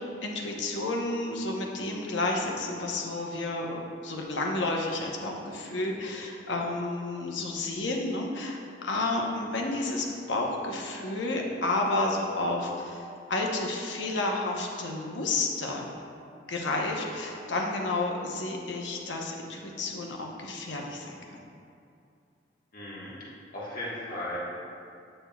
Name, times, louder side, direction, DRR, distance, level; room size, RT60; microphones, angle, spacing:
voice 1, 0.2-15.9 16.5-21.5, left 2 dB, 85° left, 0 dB, 0.9 m, -31 dB
voice 2, 22.7-23.1 23.5-24.4, left 1 dB, 50° left, -6 dB, 1.4 m, -36 dB
8.8 x 6.5 x 2.3 m, 2.4 s
head